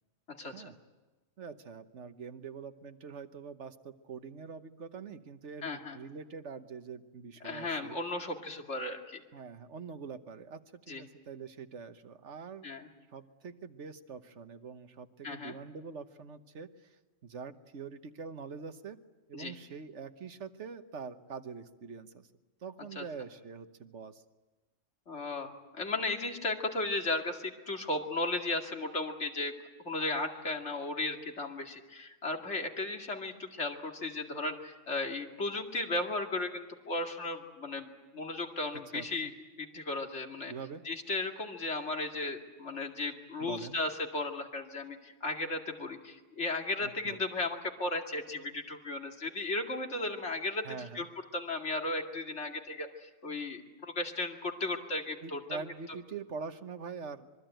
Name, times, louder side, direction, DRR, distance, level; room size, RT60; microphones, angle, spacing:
voice 1, 1.4-8.0 9.3-12.7 13.1-19.0 19.3-22.3 22.6-24.2 38.9-39.3 40.5-40.8 43.4-43.8 46.8-47.2 50.6-51.1 55.2-57.3, right 5 dB, 70° right, 10 dB, 1.4 m, -44 dB
voice 2, 5.6-6.0 7.4-9.2 10.9-11.0 12.6-12.9 15.2-15.5 19.3-19.5 23.0-23.1 25.1-29.5 29.8-39.3 39.6-40.5 40.8-50.7 50.9-51.1 51.3-55.6, left 2 dB, 65° left, 3 dB, 2.6 m, -35 dB
25.5 x 22.5 x 9.1 m, 1.2 s
omnidirectional pair, 1.3 m